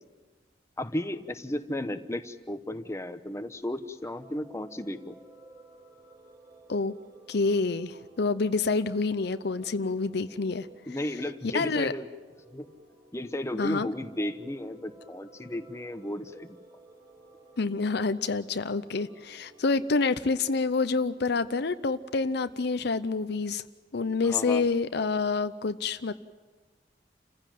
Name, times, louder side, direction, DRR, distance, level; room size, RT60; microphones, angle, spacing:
voice 1, 0.8-5.2 10.9-12.1 12.5-12.7 13.1-16.6 24.2-24.7, left 1 dB, 15° left, 8 dB, 1.0 m, -34 dB
sound 1, 4.0-23.3, right 2 dB, 25° right, 4.4 m, -55 dB
voice 2, 7.3-10.7 11.5-11.9 13.6-13.9 17.6-23.6 23.9-26.1, left 4 dB, 65° left, 12 dB, 0.7 m, -27 dB
29.0 x 15.5 x 9.3 m, 1.3 s
head